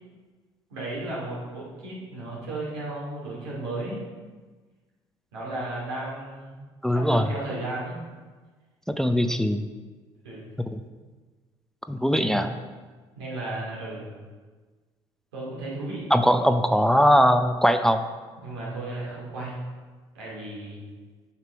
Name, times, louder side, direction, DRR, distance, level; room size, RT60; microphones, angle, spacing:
voice 1, 0.7-4.0 5.3-8.0 10.2-10.4 12.1-12.4 13.2-14.2 15.3-16.1 18.4-19.6 20.1-20.8, right 2 dB, 85° right, -5 dB, 2.6 m, -34 dB
voice 2, 6.8-7.3 8.9-9.7 10.7-10.8 11.9-12.5 16.1-18.1, equal, 5° left, 8 dB, 0.5 m, -21 dB
8.3 x 5.8 x 4.5 m, 1.4 s
hypercardioid pair, 60°, 13 cm